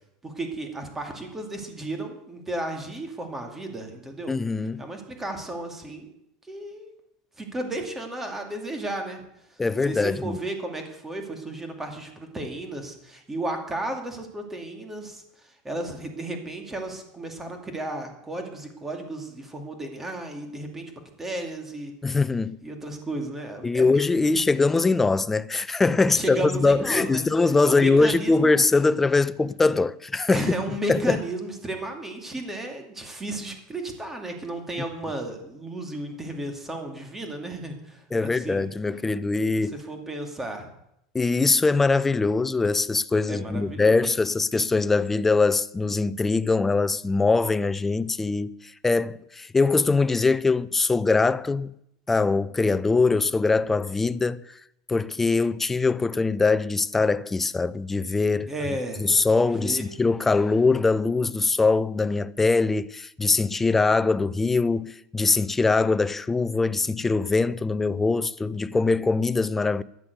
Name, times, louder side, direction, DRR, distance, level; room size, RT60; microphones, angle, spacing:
voice 1, 0.2-4.3 4.8-6.1 6.5-6.9 7.4-9.2 9.8-20.9 21.2-21.9 22.6-24.2 26.1-27.2 27.6-28.5 30.3-38.6 39.5-40.7 43.3-44.1 58.5-59.1 59.4-59.9, right 2 dB, 10° right, 2.4 m, -34 dB
voice 2, 4.3-4.8 9.6-10.4 22.0-22.6 23.6-30.5 30.9-31.2 38.1-39.7 41.1-48.5 48.8-51.7 52.1-54.4 54.9-58.5 59.0-69.8, left 3 dB, 10° left, 0.4 m, -22 dB
14.0 x 9.7 x 8.0 m
supercardioid pair, 155°, 3 cm